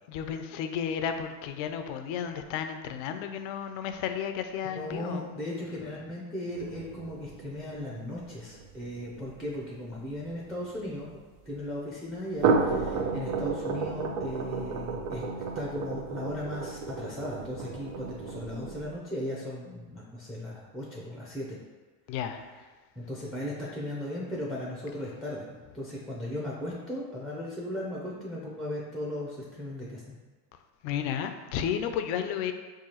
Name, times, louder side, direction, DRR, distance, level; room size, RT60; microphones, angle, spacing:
voice 1, 0.1-5.3 22.1-22.4 30.8-32.5, left 8 dB, 70° left, 8 dB, 0.5 m, -32 dB
voice 2, 4.6-11.1 11.5-15.3 15.5-21.6 22.4-22.5 23.0-30.2, left 1 dB, ahead, -4 dB, 0.5 m, -37 dB
sound 1, 6.5-11.1 12.2-19.0, right 4 dB, 60° right, 0.6 m, -32 dB
4.7 x 2.3 x 2.9 m, 1.3 s
supercardioid pair, 95°, 49 cm